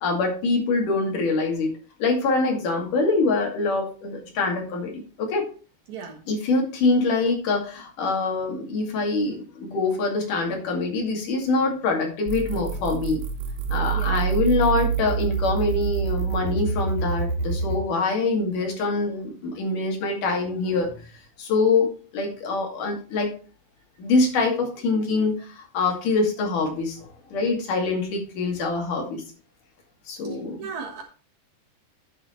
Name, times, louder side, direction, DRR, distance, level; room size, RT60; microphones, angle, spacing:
voice 1, 0.0-1.7 2.0-5.5 6.3-13.2 13.7-20.9 21.4-21.9 22.1-23.3 24.0-29.2 30.1-30.6, left 3 dB, 85° left, 1 dB, 4.0 m, -24 dB
sound 1, 12.3-17.8, right 6 dB, 85° right, 2.8 m, -26 dB
voice 2, 30.6-31.0, right 6 dB, 70° right, 3 dB, 2.7 m, -35 dB
9.7 x 6.8 x 4.4 m, 0.37 s
omnidirectional pair, 3.6 m